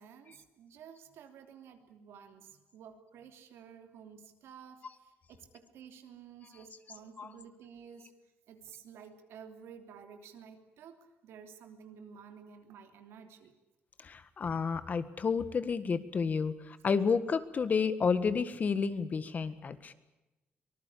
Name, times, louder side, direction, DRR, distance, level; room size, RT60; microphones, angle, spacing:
voice 1, 0.0-8.1 8.5-13.5, right 7 dB, 85° right, 6 dB, 3.1 m, -52 dB
voice 2, 14.0-19.9, left 5 dB, 40° left, 13 dB, 1.6 m, -31 dB
24.5 x 20.0 x 8.6 m, 1.0 s
cardioid pair, 115°, 4 cm